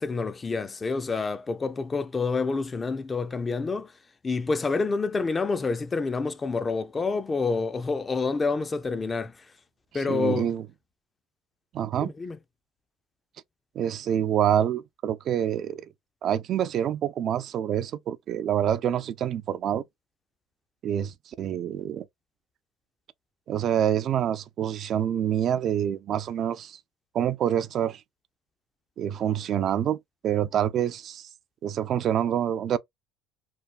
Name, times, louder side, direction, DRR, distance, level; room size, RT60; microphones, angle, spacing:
voice 1, 0.0-3.9 4.2-9.5 9.9-10.5 12.0-12.4, left 4 dB, 25° left, 0.4 m, -28 dB
voice 2, 9.9-10.6 11.7-12.1 13.8-15.9 16.2-19.8 20.8-22.1 23.5-26.8 27.1-28.0 29.0-30.0 30.2-31.3 31.6-32.8, right 10 dB, 50° right, 0.3 m, -26 dB
3.3 x 2.2 x 2.4 m
supercardioid pair, 100°, 0 cm